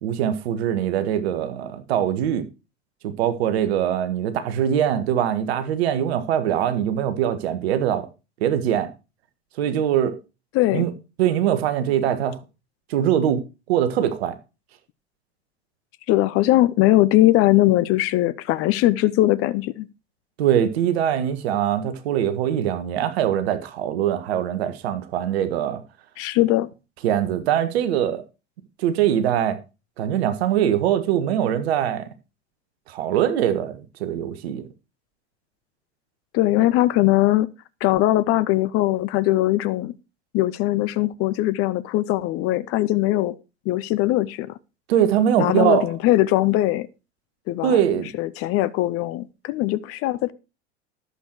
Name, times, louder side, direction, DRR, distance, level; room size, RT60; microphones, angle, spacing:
voice 1, 0.0-2.5 3.0-8.1 8.4-8.9 9.6-10.2 10.7-10.9 11.2-12.4 12.9-13.4 13.7-14.3 20.4-25.8 27.0-28.2 28.8-29.6 30.0-32.1 32.9-34.7 44.9-45.9 47.6-48.1, right 10 dB, 65° right, 1.6 m, -22 dB
voice 2, 16.1-19.9 26.2-26.7 36.3-37.5 37.8-39.9 40.3-43.3 43.7-44.6 45.4-46.9 47.5-47.8 48.2-50.3, left 16 dB, 40° left, 0.8 m, -20 dB
12.0 x 7.8 x 4.6 m
hypercardioid pair, 85°, 34 cm